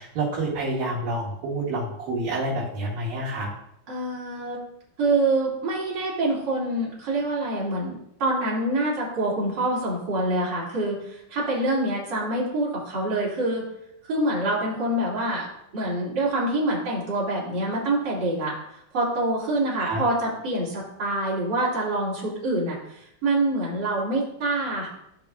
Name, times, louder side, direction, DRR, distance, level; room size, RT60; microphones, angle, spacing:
voice 1, 0.0-3.5 19.8-20.0, right 2 dB, 65° right, -9 dB, 3.6 m, -28 dB
voice 2, 3.9-4.6 5.0-13.6 14.1-15.5 15.7-18.5 18.9-22.8 23.2-24.9, right 2 dB, 30° right, -7 dB, 2.8 m, -26 dB
14.5 x 5.3 x 2.4 m, 0.77 s
omnidirectional pair, 4.5 m